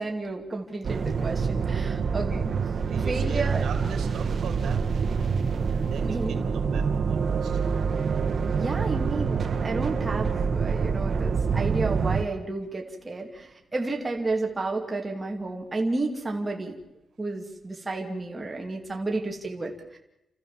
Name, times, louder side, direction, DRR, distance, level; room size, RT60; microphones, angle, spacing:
voice 1, 0.0-2.5 3.1-3.7 6.0-6.4 8.5-16.8 17.2-20.0, right 2 dB, 15° right, 0 dB, 2.5 m, -31 dB
sound 1, 0.8-12.2, right 5 dB, 50° right, 1.2 m, -26 dB
voice 2, 2.7-5.2 5.7-7.6, right 5 dB, 75° right, 5 dB, 3.3 m, -41 dB
29.5 x 14.5 x 7.4 m, 0.92 s
wide cardioid pair, 155°, 0 cm